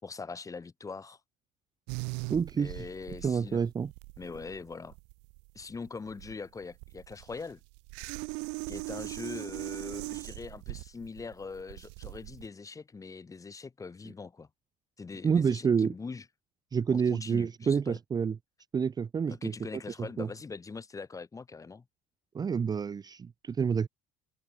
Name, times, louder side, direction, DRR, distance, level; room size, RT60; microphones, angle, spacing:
voice 1, 0.0-1.2 2.5-3.6 4.2-4.9 5.5-7.6 8.7-14.5 15.0-16.2 16.9-18.0 19.3-21.8, left 4 dB, 20° left, 4.7 m, -42 dB
sound 1, 1.9-12.5, right 36 dB, 90° right, 3.1 m, -40 dB
voice 2, 2.3-2.8 3.2-3.9 15.2-15.9 16.7-18.3 18.7-19.5 20.2-20.3 22.3-23.9, right 6 dB, 20° right, 0.9 m, -28 dB
open air
cardioid pair, 140°, 18 cm